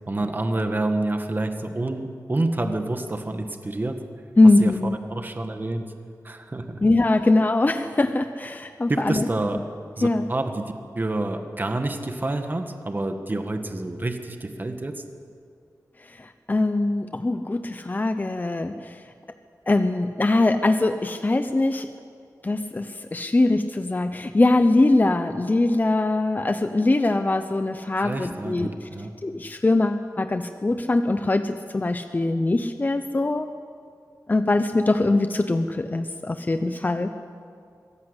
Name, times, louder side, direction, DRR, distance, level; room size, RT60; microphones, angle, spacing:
voice 1, 0.1-4.0 4.6-4.7 5.1-5.9 6.2-6.8 8.9-9.6 10.0-15.0 28.0-29.2, right 2 dB, 30° right, 6 dB, 1.7 m, -28 dB
voice 2, 4.4-5.0 6.8-9.3 9.5-9.6 10.0-10.2 16.0-19.0 19.7-21.9 22.4-28.7 29.2-33.5 34.3-37.1, left 2 dB, 30° left, 8 dB, 0.8 m, -22 dB
23.5 x 16.5 x 8.2 m, 2.3 s
wide cardioid pair, 100°, 6 cm